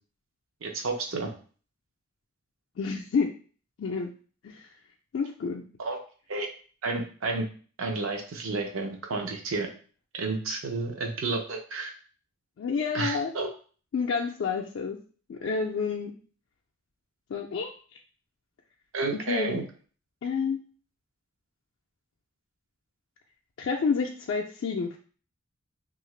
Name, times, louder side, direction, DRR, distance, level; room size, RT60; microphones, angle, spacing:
voice 1, 0.6-1.3 5.8-6.0 6.3-6.5 6.8-7.5 7.8-9.7 10.1-11.9 12.9-13.5 18.9-19.6, right 3 dB, 70° right, 2 dB, 0.6 m, -31 dB
voice 2, 2.8-3.3 3.8-4.1 4.4-4.7 5.1-5.6 12.6-13.5 13.9-15.0 15.3-16.1 17.3-18.0 19.1-19.6 20.2-20.6 23.6-25.0, left 5 dB, 60° left, -1 dB, 0.3 m, -29 dB
2.7 x 2.4 x 3.1 m, 0.40 s
head